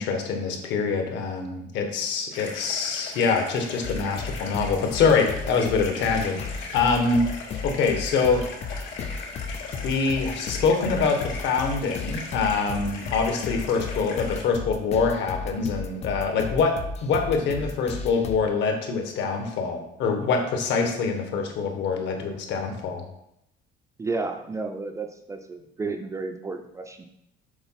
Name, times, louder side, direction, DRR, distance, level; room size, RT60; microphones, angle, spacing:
voice 1, 0.0-7.3 7.6-8.4 9.8-16.7 17.0-23.0, left 5 dB, 70° left, 4 dB, 1.3 m, -25 dB
sound 1, 2.3-14.4, left 4 dB, 90° left, 2.6 m, -39 dB
sound 2, 3.8-18.4, left 4 dB, 35° left, 0.5 m, -35 dB
voice 2, 24.0-27.1, right 3 dB, 15° right, 5 dB, 0.4 m, -32 dB
7.0 x 3.8 x 5.7 m, 0.80 s
cardioid pair, 175°, 19 cm